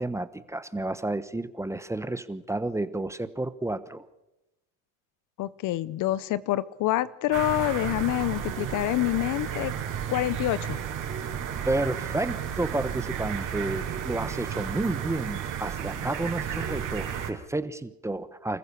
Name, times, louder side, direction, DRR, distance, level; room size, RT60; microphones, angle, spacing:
voice 1, 0.0-4.0 11.6-18.6, right 2 dB, 10° right, 13 dB, 1.0 m, -31 dB
voice 2, 5.4-9.7 10.1-10.8, left 16 dB, 55° left, 18 dB, 0.8 m, -27 dB
sound 1, 7.3-17.3, right 9 dB, 55° right, 5.4 m, -33 dB
27.0 x 14.5 x 6.9 m, 0.96 s
supercardioid pair, 105°, 37 cm